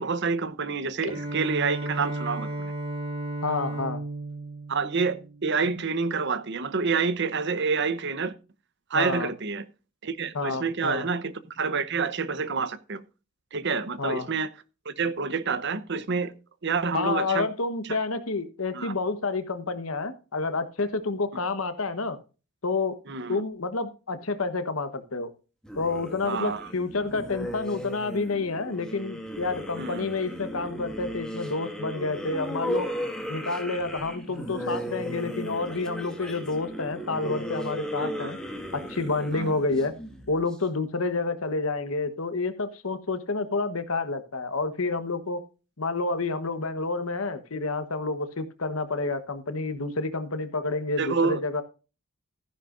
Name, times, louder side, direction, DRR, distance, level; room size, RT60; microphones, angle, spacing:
voice 1, 0.0-2.7 4.7-8.3 8.9-9.6 10.0-13.0 13.5-14.5 14.9-16.3 16.6-17.5 18.7-18.9 23.1-23.4 26.3-26.7 29.8-30.1 38.0-38.3 39.3-39.5 51.0-51.4, right 4 dB, 55° right, 0.8 m, -28 dB
Bowed string instrument, 1.1-5.8, right 2 dB, 25° right, 4.4 m, -34 dB
voice 2, 3.4-4.0 8.9-9.3 10.3-11.1 14.0-14.3 16.9-22.2 22.6-23.0 23.3-25.3 25.8-32.9 33.3-38.4 38.7-39.9 40.3-45.4 45.8-51.6, left 3 dB, 75° left, 1.2 m, -29 dB
sound 1, 25.6-40.5, equal, 5° left, 1.8 m, -36 dB
14.0 x 10.0 x 2.6 m
head